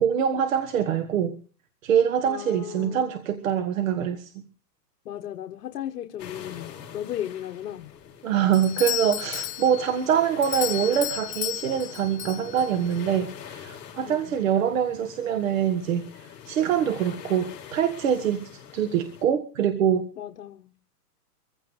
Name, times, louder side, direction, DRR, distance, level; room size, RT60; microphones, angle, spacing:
voice 1, 0.0-1.3 1.8-4.3 8.2-20.0, right 8 dB, 55° right, 1.6 m, -24 dB
voice 2, 2.2-3.1 5.0-7.9 14.1-14.3 20.2-20.7, left 11 dB, 70° left, 1.3 m, -35 dB
sound 1, 6.2-19.2, left 8 dB, 25° left, 5.1 m, -45 dB
Doorbell, 8.5-13.0, left 14 dB, 85° left, 0.7 m, -33 dB
24.0 x 15.5 x 3.2 m
hypercardioid pair, 165°, 48 cm